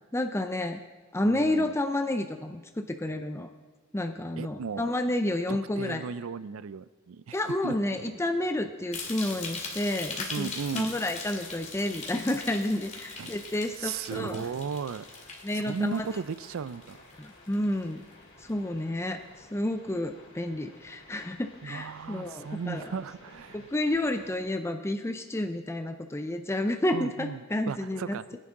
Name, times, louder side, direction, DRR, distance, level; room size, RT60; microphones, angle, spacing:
voice 1, 0.1-0.8 1.1-3.5 3.9-6.0 7.3-14.5 15.4-16.1 17.2-18.0 18.4-22.9 23.5-28.2, left 1 dB, 15° left, 7 dB, 0.5 m, -30 dB
voice 2, 1.3-1.7 4.4-4.9 5.5-7.4 7.6-8.1 10.3-11.0 13.2-13.3 13.8-15.1 15.5-17.0 21.6-23.7 26.9-27.4 27.7-28.4, right 5 dB, 70° right, 17 dB, 0.4 m, -36 dB
sound 1, 8.9-17.3 17.5-18.0 18.5-18.6, left 4 dB, 35° left, 2.3 m, -40 dB
sound 2, 9.2-24.4, left 2 dB, 60° left, 3.6 m, -54 dB
21.0 x 10.5 x 3.7 m, 1.4 s
head